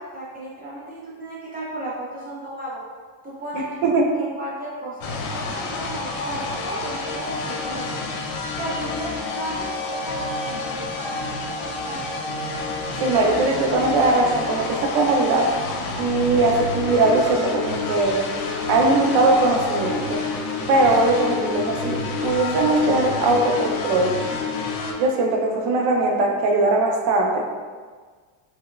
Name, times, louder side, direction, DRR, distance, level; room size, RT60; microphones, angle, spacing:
voice 1, 0.0-2.8 3.2-3.8 4.1-7.9 8.6-12.0, right 1 dB, 20° right, -7 dB, 0.4 m, -34 dB
voice 2, 3.5-4.2 13.0-15.5 16.0-18.2 18.7-20.2 20.7-24.2 25.0-27.4, right 2 dB, 70° right, 1 dB, 0.7 m, -20 dB
sound 1, 5.0-24.9, left 3 dB, 65° left, 0.6 m, -29 dB
4.5 x 2.2 x 2.3 m, 1.5 s
cardioid pair, 140°, 48 cm